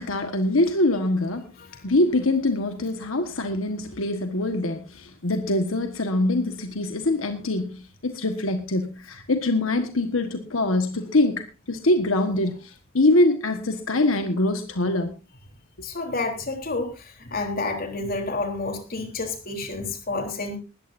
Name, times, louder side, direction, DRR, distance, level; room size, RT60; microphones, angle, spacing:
voice 1, 0.0-1.5 1.8-15.1, left 2 dB, 85° left, 1.5 m, -24 dB
voice 2, 15.8-20.6, left 3 dB, 45° left, 3.6 m, -29 dB
19.5 x 14.5 x 2.7 m
head